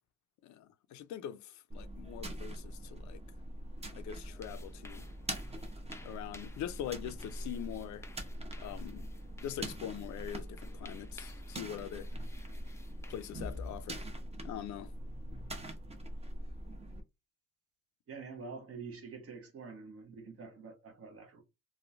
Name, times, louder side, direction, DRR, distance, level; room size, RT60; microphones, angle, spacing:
voice 1, 0.4-3.2 3.9-5.1 6.0-8.1 8.6-9.1 9.4-12.1 13.1-14.0 14.4-14.9, left 10 dB, 70° left, 0.4 m, -43 dB
sound 1, 1.7-17.0, right 1 dB, 20° right, 0.7 m, -43 dB
sound 2, 3.8-14.0, left 2 dB, 10° left, 0.4 m, -57 dB
voice 2, 18.1-21.4, right 4 dB, 50° right, 0.9 m, -47 dB
3.0 x 2.1 x 2.4 m
cardioid pair, 90°, 30 cm